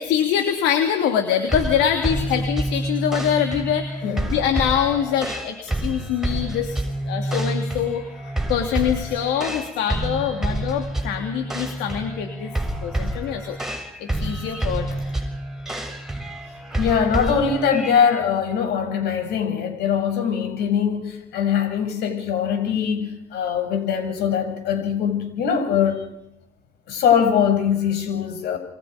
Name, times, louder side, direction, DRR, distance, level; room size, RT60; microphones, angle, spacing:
voice 1, 0.0-6.8 7.0-12.5 12.8-13.6 14.0-15.3, left 9 dB, 90° left, 4 dB, 3.1 m, -24 dB
sound 1, 1.5-18.2, right 1 dB, 5° right, 7.0 m, -28 dB
voice 2, 4.0-4.4 16.8-26.0 26.9-28.6, left 7 dB, 75° left, 6 dB, 7.7 m, -22 dB
29.0 x 23.5 x 5.2 m, 0.83 s
cardioid pair, 110°, 17 cm